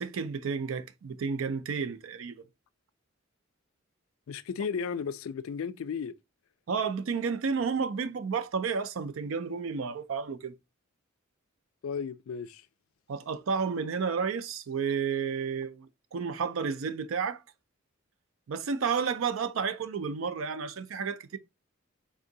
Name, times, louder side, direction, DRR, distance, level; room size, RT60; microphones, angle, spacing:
voice 1, 0.0-2.4 6.7-10.5 13.1-17.4 18.5-21.4, right 5 dB, 70° right, 0.4 m, -31 dB
voice 2, 4.3-6.1 11.8-12.7, left 6 dB, 75° left, 0.3 m, -34 dB
3.7 x 2.6 x 3.8 m
head